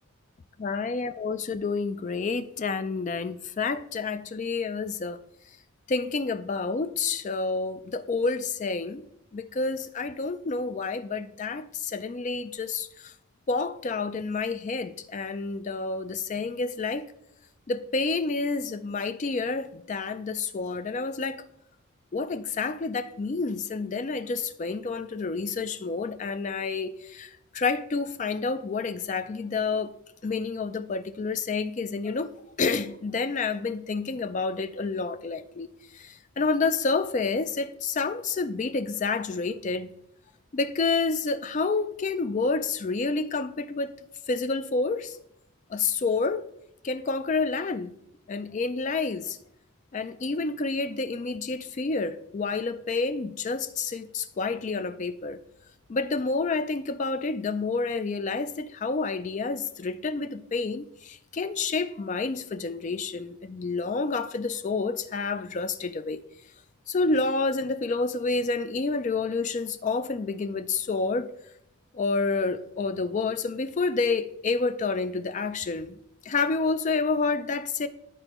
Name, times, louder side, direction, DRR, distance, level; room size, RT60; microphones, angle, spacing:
voice 1, 0.6-5.2 5.9-9.0 9.3-13.1 13.5-17.1 17.7-21.4 22.1-29.9 30.2-32.3 32.6-39.9 40.5-43.9 44.3-45.2 45.7-46.4 46.8-47.9 48.3-49.4 49.9-55.4 55.9-66.2 66.9-71.3 71.9-76.0 76.3-77.9, left 4 dB, 35° left, 0.3 m, -29 dB
11.5 x 4.4 x 3.0 m
head